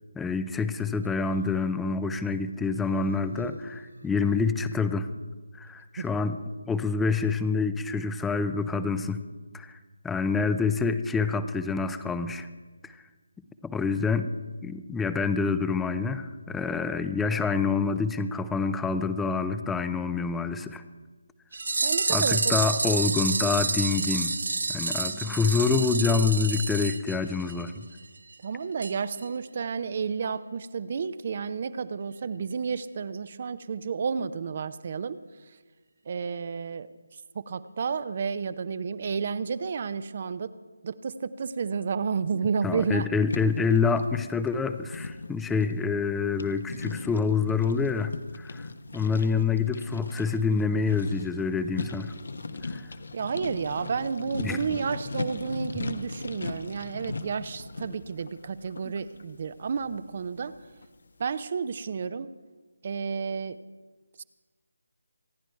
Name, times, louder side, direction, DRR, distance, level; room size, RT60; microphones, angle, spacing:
voice 1, 0.2-5.1 5.5-6.4 6.7-9.2 9.5-9.8 10.0-12.5 12.8-12.9 13.6-14.3 14.6-20.8 22.1-24.3 24.7-27.8 42.6-52.1 52.7-52.8 54.4-54.7, left 4 dB, 5° left, 11 dB, 0.6 m, -27 dB
Human voice, 0.9-1.8 2.7-4.6 5.6-5.7, right 1 dB, 85° right, 4.2 m, -48 dB
sound 1, 21.5-27.7 28.0-28.1 28.3-28.4 28.8-28.9 29.2-29.3, right 3 dB, 65° right, 1.4 m, -28 dB
voice 2, 21.8-22.6 28.4-35.2 36.1-36.9 37.3-40.5 40.8-43.1 53.1-60.5 61.2-62.3 62.8-63.6 64.2-64.3, right 6 dB, 40° right, 15 dB, 0.7 m, -31 dB
sound 2, 43.3-60.9, left 3 dB, 60° left, 1.2 m, -39 dB
25.5 x 10.5 x 4.6 m, 1.3 s
figure-of-eight pair, 155°, 0 cm